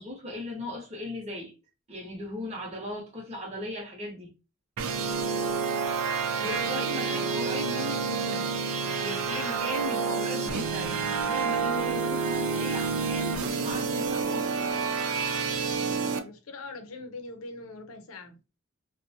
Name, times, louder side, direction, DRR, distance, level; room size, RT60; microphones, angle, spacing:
voice 1, 0.0-1.5 1.9-4.3 6.4-8.5 8.8-14.7, left 1 dB, 30° right, 0.8 m, -37 dB
sound 1, 4.8-16.2, right 5 dB, 85° right, 0.4 m, -29 dB
voice 2, 6.4-7.3 16.1-18.4, left 2 dB, 85° left, 0.6 m, -42 dB
2.5 x 2.1 x 2.7 m
head